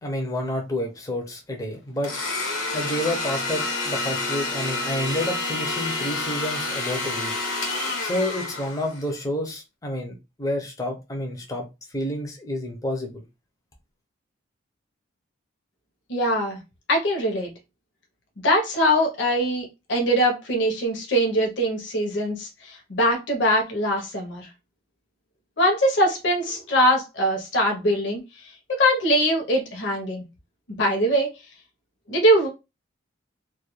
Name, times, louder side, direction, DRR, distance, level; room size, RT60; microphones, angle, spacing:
voice 1, 0.0-2.1 2.7-7.3 8.0-11.7 11.9-13.2, left 1 dB, 15° left, 0.5 m, -29 dB
Domestic sounds home sounds, 2.0-9.1, left 3 dB, 75° left, 1.1 m, -28 dB
voice 2, 16.1-16.6 16.9-17.5 18.4-24.5 25.6-28.2 28.7-30.2 30.7-31.3 32.1-32.5, equal, 60° left, 0.7 m, -22 dB
2.3 x 2.2 x 2.9 m
head